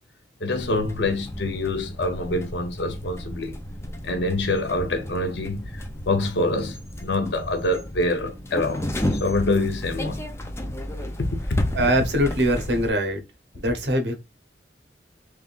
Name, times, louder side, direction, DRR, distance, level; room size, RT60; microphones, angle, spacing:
voice 1, 0.4-3.5 4.0-8.9 9.2-10.3 11.0-11.7, left 2 dB, 70° left, 0.8 m, -26 dB
sound 1, 0.5-12.9, equal, 15° left, 0.6 m, -33 dB
voice 2, 11.7-13.2 13.5-14.2, equal, 70° right, 1.0 m, -22 dB
3.6 x 3.2 x 2.5 m
head